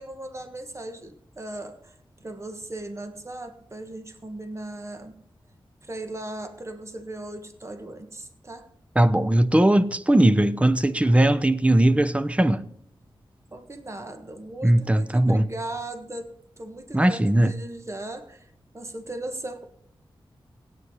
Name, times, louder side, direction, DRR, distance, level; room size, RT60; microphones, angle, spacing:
voice 1, 0.0-1.9 2.2-5.1 5.8-8.7 13.5-16.3 16.6-18.5 18.7-19.6, right 1 dB, 30° right, 1.5 m, -37 dB
voice 2, 8.9-12.7 14.6-15.5 16.9-17.5, right 1 dB, 15° right, 0.7 m, -19 dB
16.5 x 9.3 x 5.6 m
wide cardioid pair, 80°, 9 cm